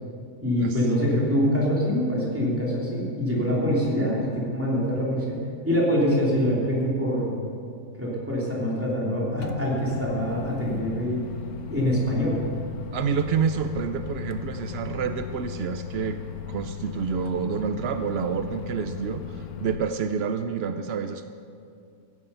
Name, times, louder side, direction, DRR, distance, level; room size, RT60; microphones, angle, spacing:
voice 1, 0.4-7.4 7.9-11.2 11.7-12.4, equal, 10° right, -5 dB, 3.1 m, -25 dB
Microwave oven, 9.4-19.8, left 9 dB, 70° left, 1.2 m, -37 dB
voice 2, 12.9-16.2 16.5-21.3, right 6 dB, 85° right, 9 dB, 0.5 m, -28 dB
16.0 x 9.7 x 5.6 m, 2.4 s
omnidirectional pair, 1.7 m